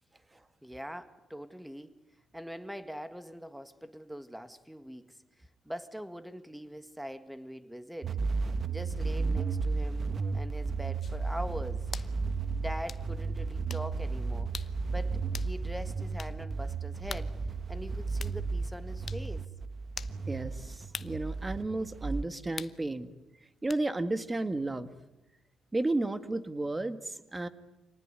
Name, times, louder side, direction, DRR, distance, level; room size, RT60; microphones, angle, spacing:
voice 1, 0.6-1.9 2.3-5.2 5.7-8.2 8.7-11.9 12.6-14.5 14.9-17.3 17.7-19.5, equal, 5° right, 1.8 m, -42 dB
sound 1, 8.0-22.2, right 4 dB, 45° right, 1.2 m, -33 dB
sound 2, 11.0-11.2 11.9-12.1 12.9-13.0 13.7-13.9 14.5-14.8 15.3-15.5 16.2-16.4 17.1-17.3 18.2-18.4 19.1-19.2 20.0-20.2 20.9-21.2 22.6-22.8 23.7-23.8, left 6 dB, 45° left, 0.9 m, -41 dB
voice 2, 20.3-23.1 23.6-24.9 25.7-27.5, right 2 dB, 20° right, 1.8 m, -33 dB
27.0 x 19.0 x 9.7 m
cardioid pair, 90°, 0 cm